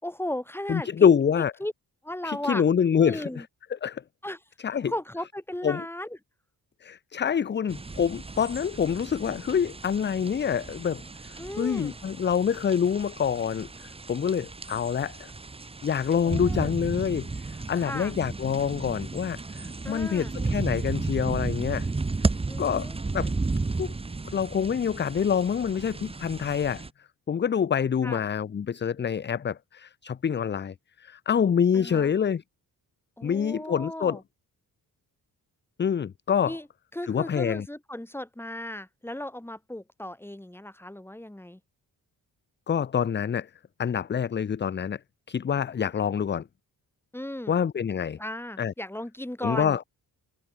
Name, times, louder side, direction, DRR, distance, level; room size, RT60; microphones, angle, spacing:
voice 1, 0.0-1.1 1.6-1.7 2.0-2.6 3.0-3.4 4.2-4.4 4.9-6.2 11.4-12.0 16.2-16.7 17.8-18.1 19.8-20.3 22.5-23.0 28.0-28.2 31.7-32.1 33.2-34.2 36.4-36.7 36.9-41.6 47.1-47.5 48.2-49.8, left 1 dB, 5° left, 6.8 m, -36 dB
voice 2, 0.7-1.5 2.2-3.4 3.7-4.0 4.6-4.9 5.6-5.9 6.8-15.3 15.8-21.9 22.6-23.3 23.8-23.9 24.3-32.4 33.2-34.2 35.8-36.6 37.1-37.7 42.7-43.5 43.8-45.0 45.3-46.5 47.5-48.2 48.6-48.7 49.4-49.8, left 7 dB, 30° left, 0.5 m, -26 dB
sound 1, 7.7-26.9, right 3 dB, 15° right, 0.9 m, -34 dB
wide cardioid pair, 135°, 38 cm